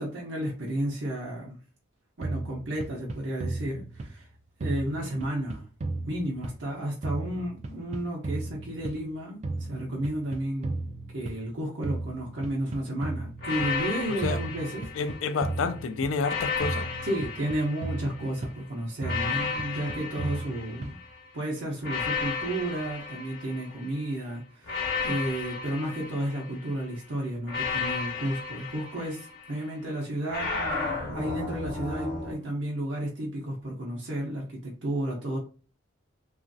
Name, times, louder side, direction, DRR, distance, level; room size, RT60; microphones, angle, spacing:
voice 1, 0.0-1.6 2.2-4.3 4.6-5.7 6.1-9.4 9.7-10.7 11.1-14.9 17.0-21.0 21.3-30.5 31.1-35.4, right 1 dB, 65° right, 0.7 m, -32 dB
sound 1, 2.2-4.3 4.6-6.8 7.0-9.1 9.4-11.5 11.8-13.8 14.2-16.3 16.6-18.7 19.0-21.1, right 2 dB, 30° right, 0.3 m, -35 dB
sound 2, 13.4-15.6 16.2-18.4 19.0-21.2 21.8-24.0 24.6-26.8 27.5-29.6 30.3-32.3, left 4 dB, 50° left, 0.9 m, -33 dB
voice 2, 14.9-16.9, left 4 dB, 75° left, 0.4 m, -29 dB
3.0 x 2.4 x 2.6 m
head